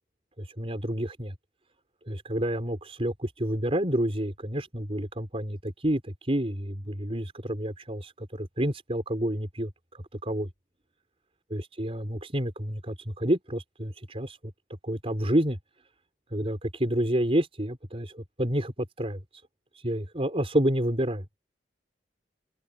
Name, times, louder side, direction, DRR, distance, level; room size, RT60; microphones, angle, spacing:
voice 1, 0.4-1.3 2.1-9.7 10.2-10.5 11.5-14.4 14.8-15.6 16.3-19.2 19.7-21.2, right 1 dB, 35° right, 4.7 m, -29 dB
head